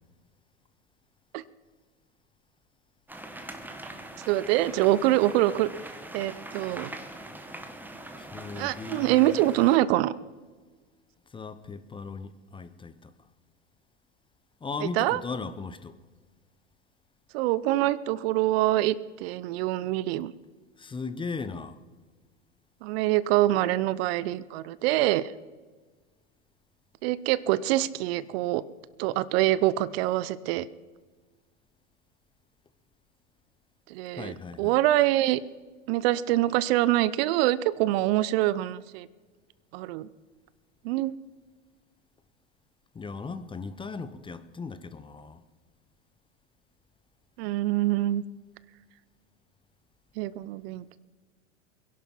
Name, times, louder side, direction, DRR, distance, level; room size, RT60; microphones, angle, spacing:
sound 1, 3.1-9.8, right 1 dB, 5° right, 1.5 m, -42 dB
voice 1, 4.3-5.7 6.1-6.9 8.5-10.1 15.0-15.2 17.3-20.3 22.8-25.3 27.0-28.6 29.0-30.7 33.9-35.4 35.9-39.1 39.7-40.1 40.8-41.1 47.4-48.2 50.2-51.0, right 15 dB, 55° right, 0.7 m, -25 dB
voice 2, 8.2-9.4 11.3-13.1 14.6-16.0 20.8-21.8 34.1-34.8 42.9-45.4, left 4 dB, 15° left, 0.8 m, -37 dB
21.5 x 11.0 x 5.7 m
hypercardioid pair, 105°, 37 cm